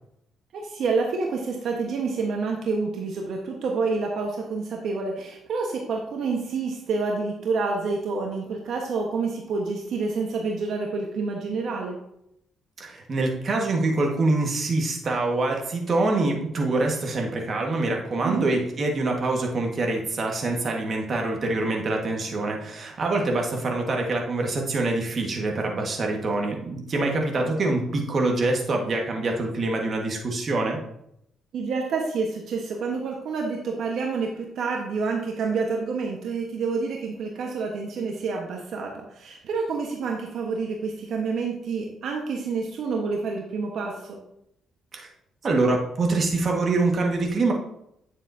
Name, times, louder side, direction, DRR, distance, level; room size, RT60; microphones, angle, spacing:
voice 1, 0.5-12.0 18.2-18.5 27.3-27.5 31.5-44.2, right 4 dB, 70° right, 1 dB, 1.2 m, -28 dB
voice 2, 12.8-30.8 44.9-45.1 45.4-47.5, right 2 dB, 45° right, 1 dB, 1.6 m, -25 dB
9.4 x 7.1 x 2.7 m, 0.77 s
cardioid pair, 90°, 0 cm